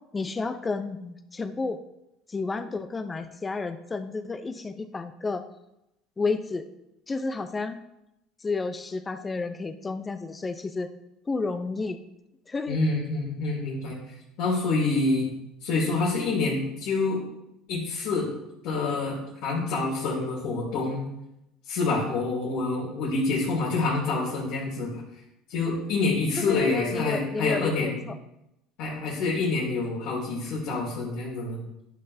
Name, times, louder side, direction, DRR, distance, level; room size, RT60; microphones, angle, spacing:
voice 1, 0.1-1.8 2.3-5.4 6.2-6.7 7.1-7.8 8.4-10.9 11.3-12.0 12.5-12.8 26.4-28.1, left 3 dB, 25° left, 9 dB, 0.7 m, -31 dB
voice 2, 12.7-13.9 14.4-15.3 15.6-17.2 17.7-18.3 18.6-21.0 21.7-25.0 25.5-28.0 28.8-31.6, left 3 dB, 70° left, -6 dB, 2.7 m, -27 dB
11.5 x 6.6 x 2.8 m, 0.88 s
supercardioid pair, 85°, 0 cm